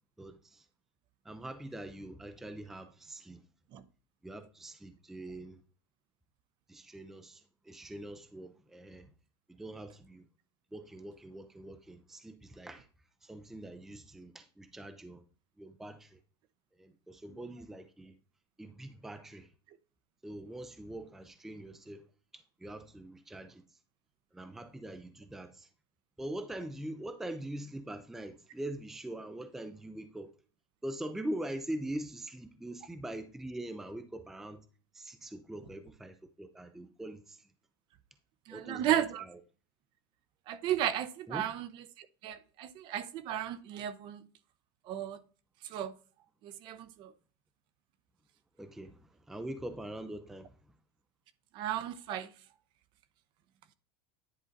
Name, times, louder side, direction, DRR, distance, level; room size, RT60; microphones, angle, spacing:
voice 1, 0.2-0.6 1.2-3.4 4.2-5.6 6.7-9.1 9.5-10.2 10.7-12.9 13.2-15.2 15.6-16.2 16.8-18.1 18.6-19.5 20.2-22.0 22.3-23.6 24.3-25.7 26.2-30.3 30.8-34.7 34.9-37.5 38.5-39.4 41.3-41.5 48.6-50.5, right 1 dB, 5° right, 0.4 m, -43 dB
voice 2, 38.5-39.2 40.5-41.7 42.0-44.2 44.9-45.2 45.7-45.9 46.4-47.1 51.5-52.3, right 11 dB, 40° right, 0.7 m, -34 dB
10.0 x 3.9 x 3.9 m
supercardioid pair, 155°, 13 cm